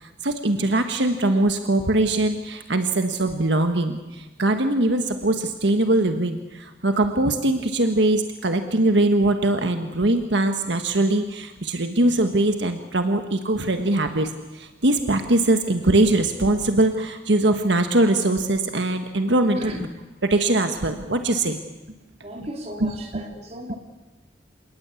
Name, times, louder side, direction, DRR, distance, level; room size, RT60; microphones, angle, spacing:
voice 1, 0.0-19.7 20.2-21.6 22.4-22.5 22.8-23.2, right 2 dB, 75° right, 6 dB, 1.5 m, -22 dB
voice 2, 22.2-23.8, equal, 35° right, 2 dB, 3.5 m, -35 dB
27.0 x 19.5 x 8.5 m, 1.1 s
head